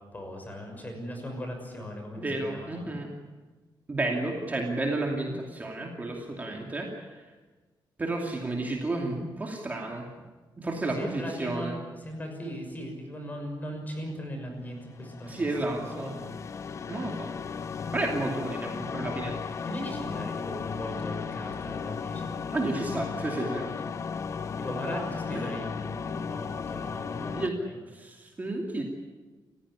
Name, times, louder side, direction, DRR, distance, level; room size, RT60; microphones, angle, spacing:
voice 1, 0.1-2.9 11.0-11.7 12.0-16.2 19.6-22.3 23.4-23.7 24.6-27.8, equal, 20° left, 4 dB, 6.3 m, -38 dB
voice 2, 2.2-3.1 3.9-7.3 8.0-10.1 10.6-11.8 15.2-16.1 16.9-17.3 17.9-19.4 20.2-20.3 22.5-23.7 24.8-25.0 25.3-25.5 27.3-27.6 27.9-28.8, right 2 dB, 20° right, 0 dB, 2.6 m, -32 dB
sound 1, 14.8-27.5, left 6 dB, 35° left, 0.7 m, -35 dB
29.5 x 15.5 x 9.9 m, 1.3 s
wide cardioid pair, 180°, 8 cm